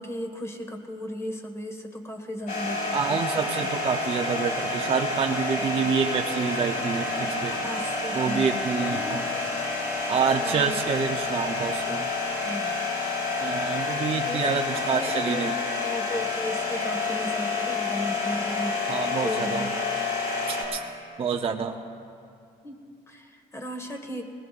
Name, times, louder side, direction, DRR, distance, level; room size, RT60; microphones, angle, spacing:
voice 1, 0.0-3.7 7.5-10.8 12.2-12.8 14.3-15.5 15.8-18.8 19.0-19.7 22.6-24.2, equal, 15° left, 4 dB, 1.7 m, -36 dB
sound 1, 2.5-20.6, left 3 dB, 55° left, 4.6 m, -29 dB
voice 2, 2.9-7.6 8.1-9.3 10.1-12.1 13.4-15.6 18.9-19.7 20.5-20.8 21.2-21.8, right 6 dB, 35° right, 2 dB, 0.7 m, -27 dB
21.5 x 18.5 x 2.5 m, 2.5 s
cardioid pair, 110°, 17 cm